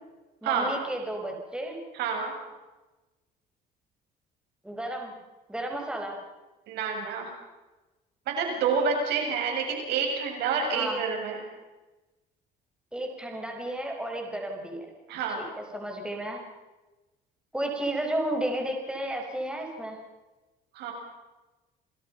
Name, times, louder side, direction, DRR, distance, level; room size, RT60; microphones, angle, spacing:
voice 1, 0.4-1.8 4.6-5.1 5.5-6.2 10.7-11.0 12.9-14.9 15.4-15.5 15.7-16.4 17.5-20.0, right 1 dB, 5° right, 1 dB, 5.7 m, -32 dB
voice 2, 1.9-2.3 6.7-7.3 8.3-11.4 15.1-15.4 20.7-20.9, right 5 dB, 85° right, 1 dB, 7.4 m, -28 dB
29.0 x 21.5 x 5.6 m, 1.1 s
cardioid pair, 110°, 17 cm